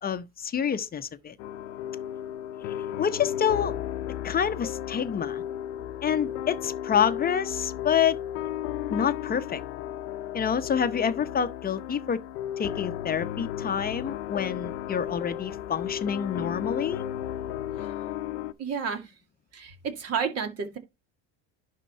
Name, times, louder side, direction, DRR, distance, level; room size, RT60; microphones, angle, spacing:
voice 1, 0.0-1.3 3.0-3.7 4.2-5.4 6.0-8.2 8.9-9.6 10.3-12.2 12.6-17.0, left 8 dB, 30° left, 0.8 m, -27 dB
sound 1, 1.4-18.5, left 11 dB, 90° left, 0.7 m, -34 dB
voice 2, 18.6-19.1 19.5-20.8, right 6 dB, 50° right, 2.2 m, -31 dB
11.0 x 3.7 x 4.3 m
supercardioid pair, 100°, 33 cm